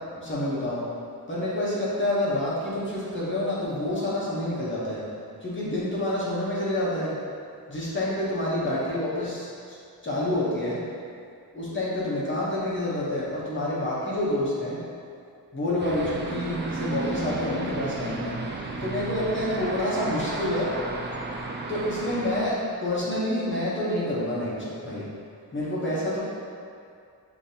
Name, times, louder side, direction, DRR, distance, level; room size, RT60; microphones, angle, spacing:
voice 1, 0.1-0.9 1.3-5.0 5.4-7.2 7.7-9.8 10.0-10.8 11.5-14.8 15.5-18.4 18.8-20.7 21.7-25.1 25.5-26.2, left 1 dB, 30° left, -8 dB, 0.9 m, -28 dB
sound 1, 15.8-22.5, right 2 dB, 30° right, 0.4 m, -33 dB
6.4 x 2.8 x 2.8 m, 2.4 s
wide cardioid pair, 170°, 38 cm